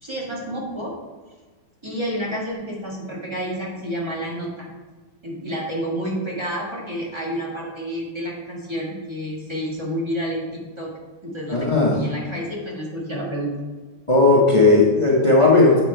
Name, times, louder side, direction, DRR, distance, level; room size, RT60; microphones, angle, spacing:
voice 1, 0.0-0.9 1.8-4.7 5.2-10.9 11.2-13.5, equal, 15° right, -4 dB, 1.3 m, -29 dB
voice 2, 11.5-12.1 14.1-15.8, left 2 dB, 50° left, -4 dB, 0.3 m, -15 dB
8.0 x 4.3 x 4.4 m, 1.4 s
omnidirectional pair, 2.1 m